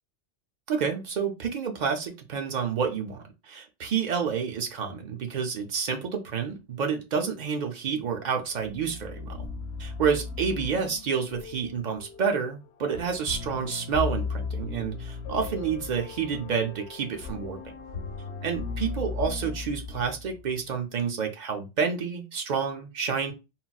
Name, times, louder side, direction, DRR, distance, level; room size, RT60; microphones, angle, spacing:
voice 1, 0.7-9.5 9.8-17.6 18.4-23.3, right 6 dB, 55° right, 0.5 m, -29 dB
sound 1, 8.5-20.6, left 4 dB, 70° left, 0.8 m, -36 dB
4.0 x 2.0 x 2.3 m
omnidirectional pair, 1.2 m